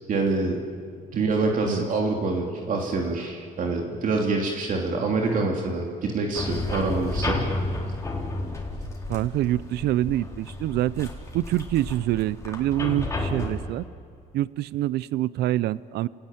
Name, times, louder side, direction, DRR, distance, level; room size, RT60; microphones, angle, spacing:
voice 1, 0.1-0.6 1.1-7.4, right 3 dB, 50° right, 1 dB, 3.2 m, -26 dB
sound 1, 6.3-13.7, left 2 dB, 15° left, 4.2 m, -31 dB
voice 2, 9.1-13.8 14.3-16.1, right 14 dB, 75° right, 19 dB, 0.6 m, -26 dB
30.0 x 18.0 x 9.2 m, 2.2 s
cardioid pair, 110°, 17 cm